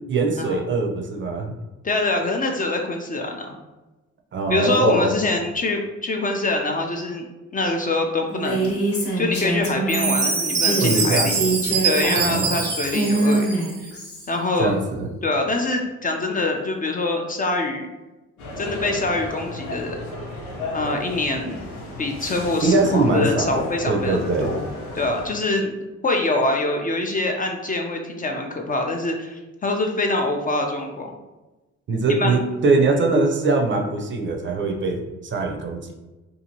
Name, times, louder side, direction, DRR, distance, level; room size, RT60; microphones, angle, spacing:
voice 1, 0.1-1.5 4.3-5.2 10.8-11.8 12.2-12.6 14.6-15.1 22.6-24.5 31.9-36.0, right 3 dB, 40° right, 3 dB, 0.5 m, -22 dB
voice 2, 1.8-3.5 4.5-7.2 7.5-8.7 9.2-11.4 11.8-13.5 13.8-13.9 14.3-14.7 15.2-17.9 18.6-20.0 20.7-21.6 22.0-24.7 24.9-25.8 26.0-31.1 32.1-32.4, left 2 dB, 30° left, 2 dB, 0.4 m, -24 dB
Female speech woman speaking, 8.3-10.1 10.5-14.3, right 2 dB, 50° left, 0.9 m, -24 dB
Chime, 9.9-13.9, right 5 dB, 90° right, 0.6 m, -24 dB
sound 1, 18.4-25.3, left 1 dB, 85° left, 0.8 m, -34 dB
2.7 x 2.5 x 2.7 m, 1.1 s
cardioid pair, 90°, 30 cm